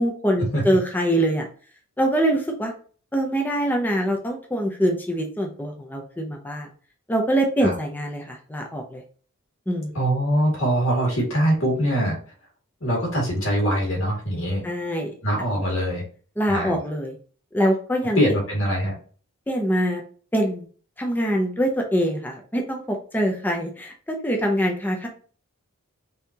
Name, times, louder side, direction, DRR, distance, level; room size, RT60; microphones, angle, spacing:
voice 1, 0.0-1.5 2.0-2.7 3.1-6.7 7.1-9.0 9.7-9.9 14.6-15.1 16.4-17.2 17.5-18.2 19.5-20.0 20.3-20.7 21.0-25.1, equal, 10° left, 2 dB, 0.5 m, -24 dB
voice 2, 9.9-12.2 12.8-14.6 15.2-16.0 16.5-16.8 18.2-18.9, equal, 65° left, -2 dB, 2.1 m, -23 dB
5.5 x 2.8 x 2.8 m, 0.42 s
head